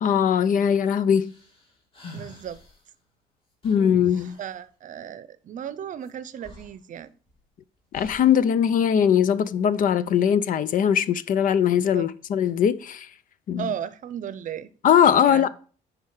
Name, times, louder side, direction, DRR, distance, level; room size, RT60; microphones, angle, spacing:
voice 1, 0.0-1.3 3.6-4.4 7.9-13.1 13.5-13.7 14.8-15.5, left 8 dB, 55° left, 0.6 m, -20 dB
sound 1, 1.2-2.8 3.6-4.6 6.1-6.2 6.4-7.4 7.9-8.5, left 1 dB, 35° left, 3.5 m, -44 dB
voice 2, 2.1-2.6 4.2-7.1 11.9-12.1 13.6-14.7 15.2-15.5, right 9 dB, 50° right, 0.7 m, -35 dB
10.0 x 4.8 x 4.8 m
cardioid pair, 110°, 17 cm